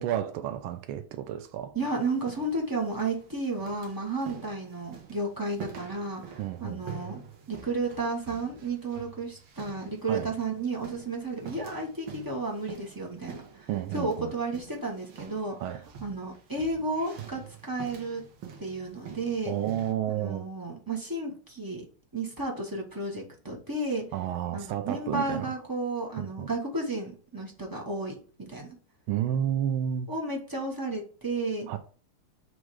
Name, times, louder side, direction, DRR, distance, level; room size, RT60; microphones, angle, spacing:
voice 1, 0.0-1.7 6.4-6.9 10.1-10.3 13.7-14.4 15.6-15.8 19.5-20.5 24.1-25.6 26.2-26.5 29.1-30.1 31.7-31.8, right 10 dB, 90° right, 1.4 m, -31 dB
voice 2, 1.7-7.2 7.5-15.6 16.0-18.2 18.6-19.5 20.1-21.8 22.1-24.0 24.5-28.7 30.1-31.7, right 2 dB, 20° right, 0.6 m, -32 dB
sound 1, 1.8-19.9, right 7 dB, 70° right, 1.8 m, -47 dB
6.2 x 3.2 x 4.7 m
omnidirectional pair, 2.3 m